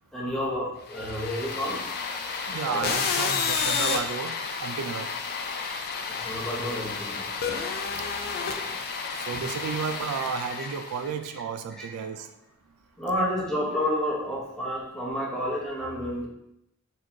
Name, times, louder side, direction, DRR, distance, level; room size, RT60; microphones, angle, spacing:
voice 1, 0.1-1.8 2.7-2.9 6.1-7.3 9.3-9.4 10.5-10.7 11.8-11.9 13.0-16.3, equal, 5° left, -5 dB, 0.8 m, -30 dB
sound 1, 0.9-11.1, left 5 dB, 45° left, 0.4 m, -31 dB
voice 2, 2.5-5.1 7.9-8.1 9.1-12.3 13.1-13.3, right 6 dB, 75° right, 8 dB, 0.3 m, -32 dB
4.1 x 3.1 x 2.7 m, 0.81 s
head